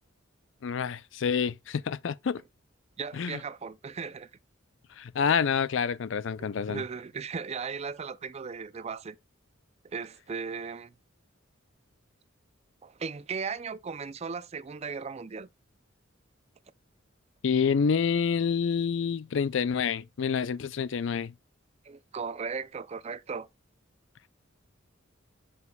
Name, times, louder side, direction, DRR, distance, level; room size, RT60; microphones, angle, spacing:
voice 1, 0.6-2.4 3.1-3.4 5.0-6.8 17.4-21.3, left 6 dB, 65° left, 0.4 m, -28 dB
voice 2, 3.0-4.3 6.4-9.2 9.8-10.9 12.8-15.5 21.8-23.5, right 5 dB, 30° right, 0.4 m, -37 dB
7.5 x 5.8 x 2.3 m
head